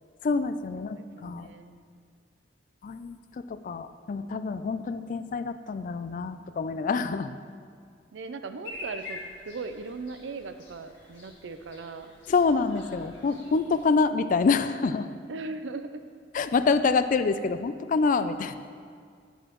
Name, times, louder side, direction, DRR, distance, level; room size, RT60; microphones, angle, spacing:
voice 1, 0.2-1.5 2.8-7.3 12.3-15.1 16.3-18.6, left 4 dB, 45° left, 11 dB, 0.3 m, -26 dB
voice 2, 0.8-1.8 8.1-9.2 9.4-12.1 15.3-16.0, right 3 dB, 90° right, 9 dB, 0.5 m, -38 dB
sound 1, 8.6-13.8, left 2 dB, 75° left, 1.8 m, -45 dB
10.5 x 7.9 x 3.0 m, 2.1 s
head